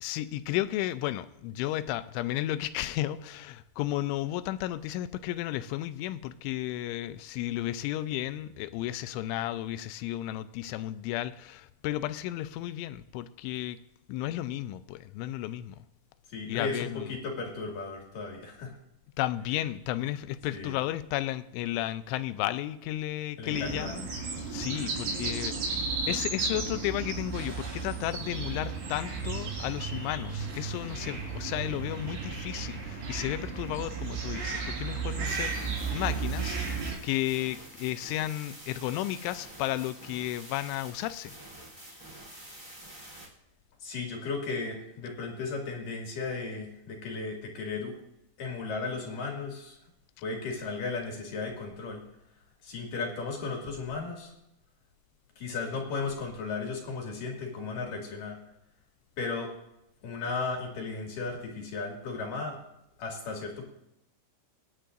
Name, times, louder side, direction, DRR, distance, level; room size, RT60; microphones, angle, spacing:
voice 1, 0.0-13.8 14.1-15.8 16.5-17.1 19.2-24.1 24.5-36.6 37.0-41.4, left 14 dB, 85° left, 2.9 m, -33 dB
voice 2, 16.3-18.8 20.5-20.8 23.4-24.0 43.8-48.0 48.4-49.8 50.2-52.0 52.6-54.3 55.4-58.4 59.2-59.5 60.0-62.6 63.0-63.6, left 4 dB, 50° left, 3.2 m, -35 dB
sound 1, 23.5-37.0, right 5 dB, 65° right, 6.5 m, -34 dB
sound 2, 35.2-43.2, right 1 dB, 10° right, 2.1 m, -48 dB
24.5 x 10.0 x 2.6 m
omnidirectional pair, 5.7 m